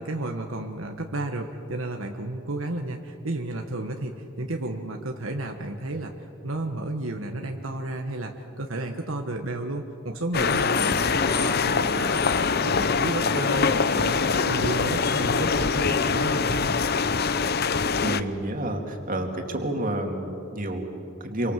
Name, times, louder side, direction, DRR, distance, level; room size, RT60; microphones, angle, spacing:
voice 1, 0.0-6.1 6.4-12.4 12.6-14.2 14.4-16.7, right 2 dB, 75° right, 3 dB, 1.5 m, -32 dB
sound 1, 10.3-18.2, left 5 dB, 50° left, 0.8 m, -23 dB
voice 2, 18.0-21.5, right 1 dB, 40° right, 3 dB, 2.7 m, -30 dB
28.0 x 24.5 x 7.7 m, 2.7 s
head